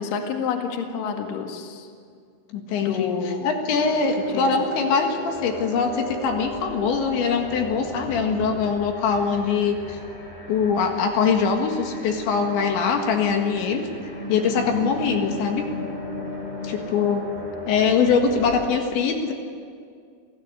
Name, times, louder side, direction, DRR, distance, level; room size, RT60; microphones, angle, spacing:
voice 1, 0.0-1.9 2.8-3.6 4.3-4.5, left 6 dB, 55° left, 3 dB, 3.1 m, -29 dB
voice 2, 2.5-3.1 3.4-10.0 10.5-13.8 14.3-15.6 16.6-17.2 17.7-19.3, left 5 dB, 70° left, 4 dB, 3.9 m, -22 dB
sound 1, 3.7-18.7, left 1 dB, 10° left, 3.1 m, -36 dB
29.0 x 16.5 x 9.7 m, 2.2 s
omnidirectional pair, 5.6 m